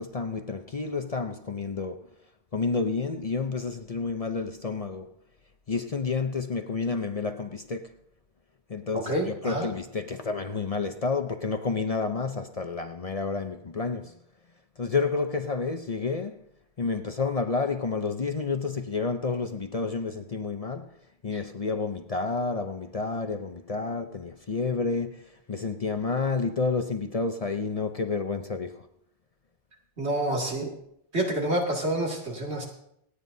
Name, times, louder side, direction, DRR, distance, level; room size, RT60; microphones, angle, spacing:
voice 1, 0.0-2.1 2.5-5.1 5.7-8.0 8.7-14.2 14.8-16.4 16.8-21.0 21.2-28.9, left 4 dB, 40° left, 0.7 m, -30 dB
voice 2, 8.9-9.7 21.3-21.4 30.0-30.7 31.1-32.6, right 1 dB, 80° right, 2.7 m, -28 dB
27.5 x 9.3 x 2.7 m
omnidirectional pair, 1.1 m